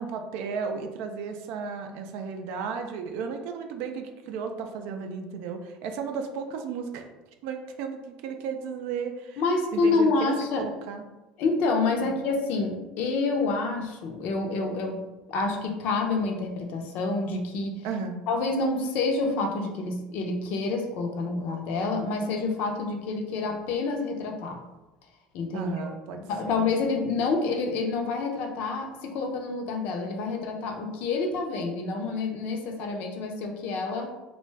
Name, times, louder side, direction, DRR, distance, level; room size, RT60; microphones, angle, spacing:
voice 1, 0.0-7.1 7.4-9.4 9.7-11.0 12.0-12.2 17.8-18.2 25.5-26.7, right 5 dB, 70° right, 5 dB, 0.4 m, -34 dB
voice 2, 9.4-10.6 11.4-15.0 15.3-17.9 18.3-24.6 25.3-25.9 26.3-34.1, left 3 dB, 65° left, 3 dB, 0.5 m, -28 dB
2.6 x 2.2 x 3.2 m, 1.1 s
supercardioid pair, 100°, 3 cm